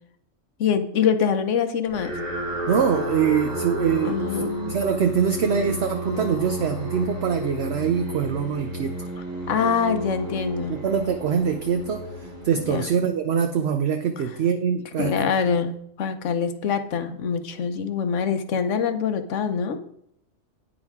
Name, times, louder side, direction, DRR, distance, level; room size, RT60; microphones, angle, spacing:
voice 1, 0.6-2.1 4.0-4.7 9.5-10.8 12.5-12.9 15.0-19.8, left 6 dB, 65° left, 9 dB, 1.2 m, -24 dB
sound 1, 1.9-13.3, right 1 dB, 90° right, 3.6 m, -32 dB
voice 2, 2.7-8.9 10.7-15.3, right 7 dB, 60° right, 7 dB, 0.9 m, -24 dB
9.9 x 9.4 x 3.6 m, 0.72 s
omnidirectional pair, 1.4 m